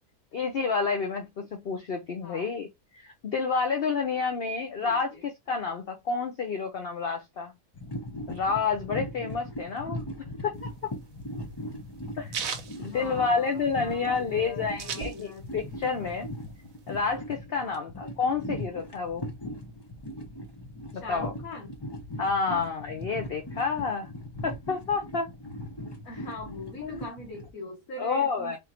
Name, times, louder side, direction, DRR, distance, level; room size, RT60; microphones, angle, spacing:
voice 1, 0.3-2.7 2.9-7.5 8.3-10.0 10.4-10.5 10.8-10.9 12.2-12.5 12.8-16.3 16.9-19.3 20.9-21.3 22.2-24.1 24.4-25.3 26.8-27.0 28.0-28.6, left 5 dB, 50° left, 0.9 m, -29 dB
voice 2, 4.8-5.3 12.7-15.7 17.6-17.9 20.9-21.8 26.0-28.6, left 2 dB, 70° left, 1.7 m, -42 dB
sound 1, 7.7-27.5, equal, 20° left, 0.8 m, -39 dB
sound 2, 10.6-13.7 14.1-14.2 14.3-15.6 16.0-17.1, right 7 dB, 70° right, 1.2 m, -37 dB
3.6 x 3.6 x 3.0 m
omnidirectional pair, 1.5 m